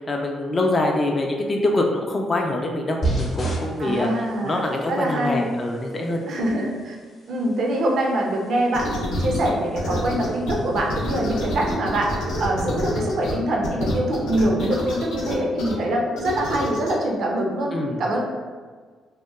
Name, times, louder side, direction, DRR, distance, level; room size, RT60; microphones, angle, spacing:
voice 1, 0.0-4.1 4.4-6.3 17.7-18.0, left 2 dB, 35° left, 1 dB, 0.3 m, -24 dB
sound 1, 3.0-11.7, right 2 dB, 55° left, 0.8 m, -34 dB
voice 2, 3.8-5.6 6.3-7.0 7.3-12.1 12.4-17.7 18.0-18.2, right 1 dB, 65° right, 0 dB, 0.5 m, -24 dB
sound 2, 8.7-9.5 9.8-13.3 13.6-15.7 16.2-16.9, left 1 dB, 85° left, 0.6 m, -28 dB
2.8 x 2.1 x 2.3 m, 1.5 s
cardioid pair, 85°, 0 cm